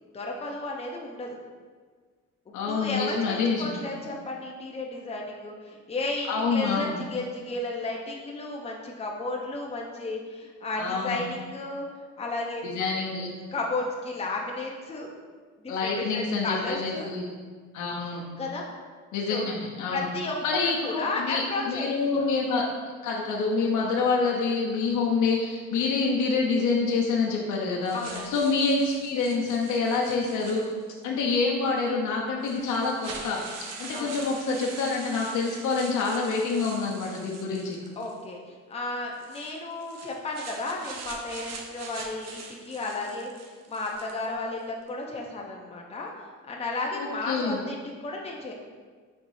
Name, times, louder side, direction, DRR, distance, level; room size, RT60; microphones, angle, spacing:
voice 1, 0.1-1.4 2.5-11.8 12.2-12.6 13.5-15.1 15.6-17.1 18.4-18.6 19.3-19.5 19.9-21.9 22.2-22.3 27.9-28.3 33.9-34.2 38.0-43.3 43.7-46.1 46.4-48.5, left 2 dB, 20° left, -1 dB, 0.6 m, -33 dB
voice 2, 2.5-3.8 6.3-7.0 10.7-11.2 12.6-13.3 15.7-17.3 17.7-18.2 19.1-20.1 20.4-22.7 23.0-30.6 31.0-33.4 33.8-37.8 47.0-47.6, left 4 dB, 75° left, -2 dB, 0.7 m, -27 dB
sound 1, 27.8-31.0 31.9-32.0 32.4-38.2 39.1-44.3, right 4 dB, 60° right, 0.7 m, -43 dB
4.6 x 4.1 x 2.6 m, 1.5 s
cardioid pair, 90°, 30 cm